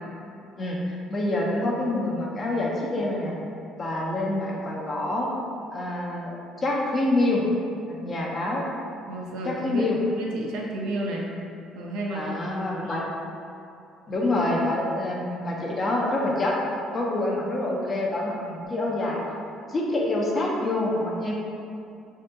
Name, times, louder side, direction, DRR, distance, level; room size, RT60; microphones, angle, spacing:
voice 1, 0.5-3.3 3.8-5.3 5.7-6.3 6.6-7.4 7.9-8.7 9.4-10.0 12.1-13.0 14.1-16.6 16.9-19.2 19.7-21.3, left 2 dB, 25° left, -3 dB, 0.4 m, -26 dB
voice 2, 9.1-9.8 10.1-11.3 11.8-12.4 12.7-13.0, right 1 dB, 80° right, -1 dB, 0.4 m, -32 dB
3.4 x 2.7 x 2.2 m, 2.6 s
cardioid pair, 160°, 0 cm